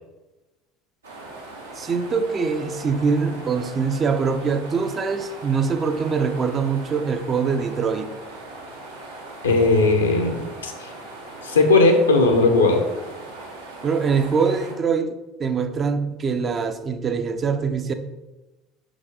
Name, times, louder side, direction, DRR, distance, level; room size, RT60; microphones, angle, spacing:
sound 1, 1.0-14.7, right 2 dB, 80° right, 1.3 m, -39 dB
voice 1, 1.8-8.1 13.8-17.9, right 5 dB, 30° right, 8 dB, 0.6 m, -23 dB
voice 2, 9.4-10.9 11.4-12.9, left 3 dB, 80° left, 4 dB, 0.9 m, -18 dB
5.9 x 5.1 x 3.7 m, 1.1 s
figure-of-eight pair, 65°, 0 cm